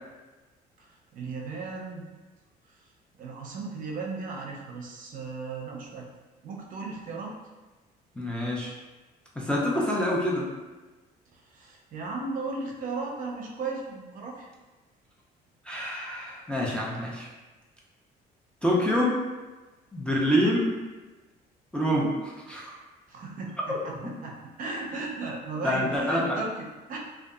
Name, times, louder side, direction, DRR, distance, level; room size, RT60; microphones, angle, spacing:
voice 1, 0.8-2.1 2.7-2.8 3.2-6.1 6.4-7.3 11.3-14.5 23.1-27.0, right 3 dB, 55° right, -1 dB, 0.5 m, -36 dB
voice 2, 8.2-8.7 9.4-10.5 15.6-17.3 18.6-19.2 19.9-20.7 21.7-22.8 23.7-24.1 25.6-26.4, equal, 5° left, -5 dB, 0.4 m, -26 dB
2.6 x 2.3 x 2.3 m, 1.2 s
cardioid pair, 110°, 17 cm